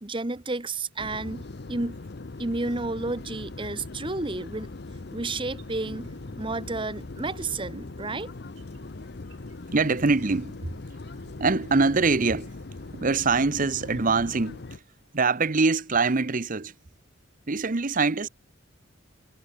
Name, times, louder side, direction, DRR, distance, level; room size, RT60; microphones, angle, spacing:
voice 1, 0.0-2.0 2.4-4.7 5.1-6.1 6.4-8.3, right 2 dB, 25° right, 1.2 m, -31 dB
sound 1, 1.0-14.8, left 2 dB, 55° left, 0.8 m, -40 dB
sound 2, 4.3-16.5, right 1 dB, 70° right, 7.4 m, -59 dB
voice 2, 9.7-10.7 11.4-12.5 12.9-14.8 15.1-16.7 17.5-18.3, right 4 dB, 45° right, 0.9 m, -24 dB
head